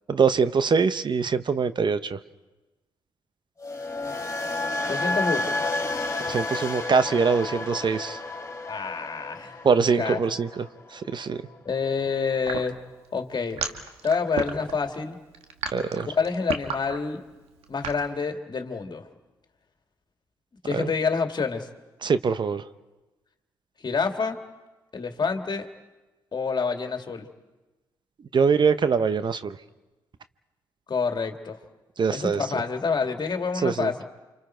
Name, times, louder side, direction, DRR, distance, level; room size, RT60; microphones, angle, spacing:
voice 1, 0.1-2.2 6.3-8.2 9.6-10.6 10.9-11.4 15.7-16.1 20.7-20.9 22.0-22.6 28.3-29.6 32.0-32.4 33.6-33.9, right 5 dB, 50° right, 12 dB, 0.9 m, -23 dB
sound 1, 3.6-11.7 12.0-12.3, left 2 dB, 30° left, 3.3 m, -31 dB
voice 2, 4.9-5.5 8.7-9.6 10.0-10.2 11.7-12.8 13.1-13.6 14.0-15.2 16.0-17.2 17.7-19.1 20.6-21.7 23.8-24.4 24.9-25.7 26.3-27.3 30.9-31.6 32.1-34.0, left 5 dB, 45° left, 5 dB, 2.2 m, -27 dB
sound 2, 12.4-18.0, right 6 dB, 80° right, 1.5 m, -32 dB
29.5 x 26.5 x 4.6 m, 1.1 s
hypercardioid pair, 45°, 10 cm